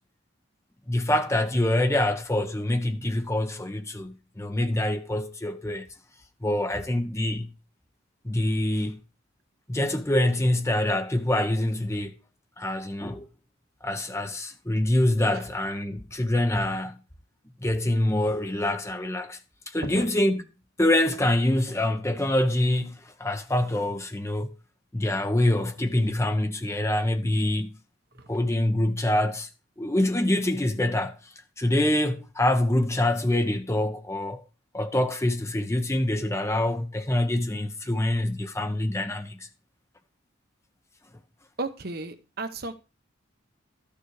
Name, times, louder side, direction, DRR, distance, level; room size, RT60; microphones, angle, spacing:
voice 1, 0.9-5.9 6.4-7.5 8.2-9.0 9.7-12.1 12.6-13.3 13.8-17.0 17.6-19.4 19.7-20.4 20.8-24.5 24.9-27.7 28.3-29.5 29.8-31.3 31.6-34.4 34.7-39.5, left 1 dB, 15° left, 0.9 m, -25 dB
voice 2, 41.6-42.7, right 3 dB, 50° right, 1.0 m, -34 dB
13.0 x 6.8 x 4.8 m
head